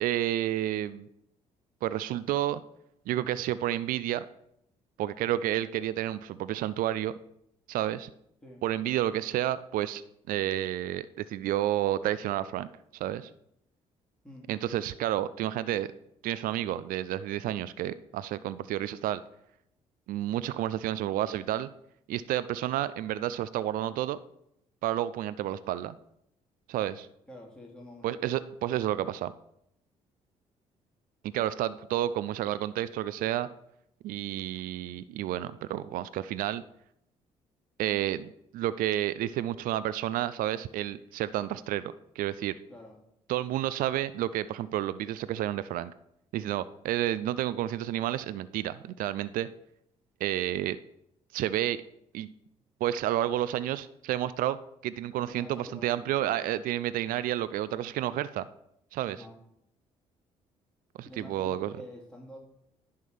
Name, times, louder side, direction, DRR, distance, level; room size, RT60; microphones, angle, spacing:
voice 1, 0.0-1.1 1.8-2.6 3.1-4.3 5.0-7.1 7.7-8.1 8.6-10.0 10.3-13.3 14.5-15.9 16.2-19.2 20.1-21.7 22.1-24.2 24.8-26.0 26.7-27.1 28.0-29.3 31.3-33.5 34.0-36.6 37.8-42.5 43.3-45.9 46.3-49.5 50.2-50.8 51.3-51.8 52.1-52.3 52.8-54.6 54.8-58.5 58.9-59.2 61.0-61.7, right 12 dB, 65° right, 16 dB, 0.4 m, -30 dB
voice 2, 27.3-28.3 42.7-43.0 55.1-56.6 59.1-59.4 61.0-62.4, left 1 dB, 5° left, -3 dB, 2.5 m, -48 dB
10.5 x 3.7 x 5.9 m, 0.77 s
hypercardioid pair, 50°, 16 cm